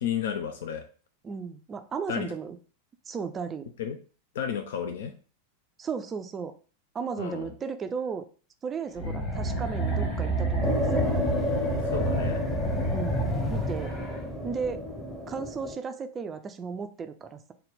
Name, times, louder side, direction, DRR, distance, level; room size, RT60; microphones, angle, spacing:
voice 1, 0.0-0.9 2.1-2.4 3.8-4.0 4.3-5.1 7.2-7.5 11.9-12.4, left 8 dB, 60° left, 7 dB, 0.4 m, -32 dB
voice 2, 1.2-2.6 3.1-3.7 5.8-6.6 6.9-8.2 8.6-11.2 12.9-13.2 13.5-13.9 14.4-14.8 15.3-17.5, right 5 dB, 20° right, 9 dB, 0.4 m, -35 dB
sound 1, 8.9-14.2, right 1 dB, 35° left, 1.5 m, -29 dB
sound 2, 10.6-15.7, equal, ahead, 0.7 m, -31 dB
3.9 x 2.2 x 3.4 m, 0.38 s
figure-of-eight pair, 90°, 0 cm